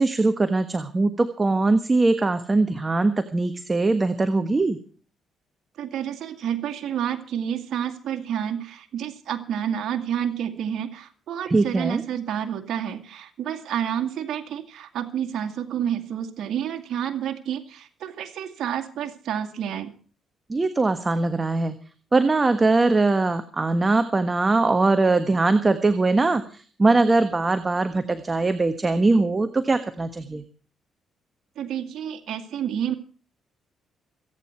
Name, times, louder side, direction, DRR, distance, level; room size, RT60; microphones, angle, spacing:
voice 1, 0.0-4.8 11.5-12.0 20.5-21.7 22.1-30.4, right 3 dB, 25° right, 9 dB, 1.4 m, -21 dB
voice 2, 5.8-19.9 31.6-32.9, right 9 dB, 70° right, 4 dB, 2.1 m, -29 dB
26.5 x 9.4 x 4.5 m, 0.40 s
cardioid pair, 90°, 0 cm